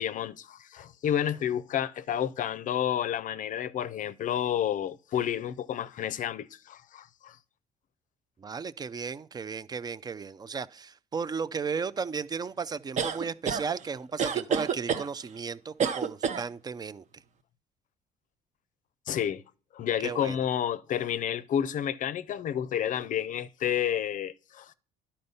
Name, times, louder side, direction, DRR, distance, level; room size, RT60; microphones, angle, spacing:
voice 1, 0.0-7.4 19.1-19.4 19.7-24.7, left 10 dB, 50° left, 0.5 m, -30 dB
voice 2, 8.4-17.0 20.0-20.4, right 5 dB, 25° right, 0.4 m, -35 dB
sound 1, 13.0-13.6 14.2-15.1 15.8-16.4, right 7 dB, 45° right, 0.8 m, -28 dB
11.0 x 4.3 x 5.4 m
cardioid pair, 110°, 17 cm